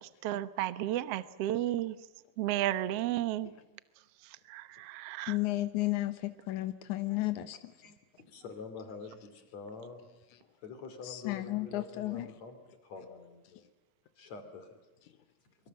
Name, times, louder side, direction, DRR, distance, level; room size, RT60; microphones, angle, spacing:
voice 1, 0.2-1.9 2.4-3.5 4.5-5.4, right 13 dB, 65° right, 14 dB, 1.9 m, -32 dB
voice 2, 5.3-7.6 11.0-12.3, left 17 dB, 90° left, 10 dB, 2.6 m, -33 dB
voice 3, 8.3-10.0 10.6-12.6 12.8-13.6 14.2-14.8, left 4 dB, 65° left, 8 dB, 4.2 m, -46 dB
25.0 x 24.0 x 7.5 m, 1.1 s
omnidirectional pair, 3.4 m